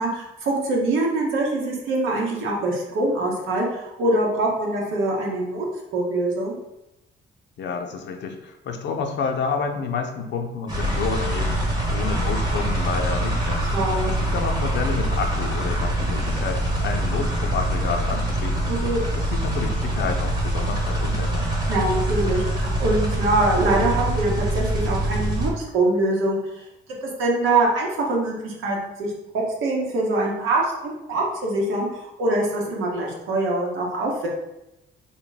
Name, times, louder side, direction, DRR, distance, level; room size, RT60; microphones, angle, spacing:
voice 1, 0.0-5.6 5.9-6.5 13.7-14.1 18.7-19.0 21.7-26.6 27.0-34.3, right 2 dB, 85° right, -2 dB, 1.0 m, -24 dB
voice 2, 7.6-11.6 11.9-13.7 14.1-18.7 19.1-21.5, left 5 dB, 65° left, 4 dB, 0.6 m, -29 dB
sound 1, 10.7-25.5, right 1 dB, 20° right, 1.1 m, -24 dB
4.0 x 2.1 x 3.9 m, 0.92 s
cardioid pair, 90°, 20 cm